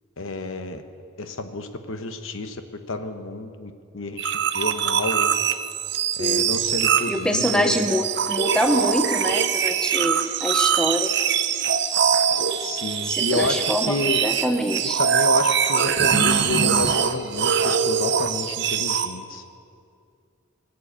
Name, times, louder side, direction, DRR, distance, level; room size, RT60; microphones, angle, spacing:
voice 1, 0.2-0.8 1.2-2.6 2.9-5.3 6.2-7.8 12.6-14.2 14.8-19.4, left 2 dB, 70° left, 8 dB, 1.0 m, -30 dB
sound 1, 4.2-19.1, right 7 dB, 55° right, 0.7 m, -23 dB
voice 2, 6.2-6.5 7.1-11.1 13.0-15.0, equal, 5° left, 5 dB, 0.7 m, -25 dB
19.5 x 7.8 x 8.5 m, 2.3 s
head